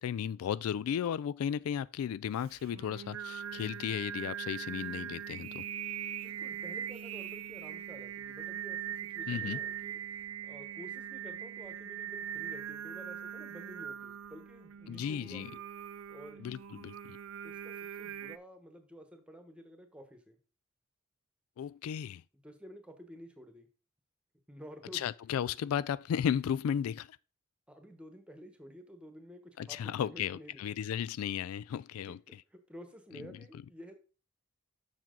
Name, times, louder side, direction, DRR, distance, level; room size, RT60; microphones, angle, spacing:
voice 1, 0.0-5.6 9.3-9.6 14.9-15.5 16.4-17.2 21.6-22.2 24.9-27.2 29.6-32.2 33.1-33.4, left 8 dB, 85° left, 0.3 m, -35 dB
Singing, 2.4-18.4, right 9 dB, 75° right, 0.5 m, -41 dB
voice 2, 6.2-10.0 10.4-15.6 16.1-16.4 17.4-20.4 22.3-23.7 24.5-25.4 27.7-30.6 32.1-33.9, equal, 5° right, 1.2 m, -51 dB
7.2 x 6.0 x 3.8 m
head